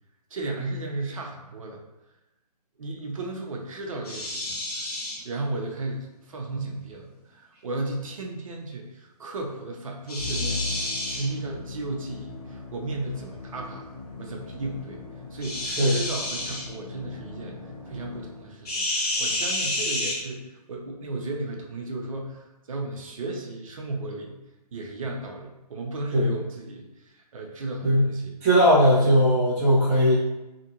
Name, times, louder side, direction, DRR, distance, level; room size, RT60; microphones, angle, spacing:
voice 1, 0.3-1.8 2.8-4.9 5.2-13.9 14.2-15.0 15.3-17.6 17.9-24.4 24.7-28.4 28.8-29.2, right 2 dB, 55° right, 1 dB, 0.7 m, -35 dB
sound 1, 4.0-5.2 10.1-11.3 15.4-16.7 18.7-20.2, left 1 dB, 70° left, 1.1 m, -29 dB
Musical instrument, 10.2-18.7, left 3 dB, 40° left, 1.2 m, -39 dB
voice 2, 28.4-30.1, equal, 15° right, -7 dB, 0.5 m, -19 dB
2.8 x 2.5 x 2.7 m, 0.99 s
figure-of-eight pair, 150°, 21 cm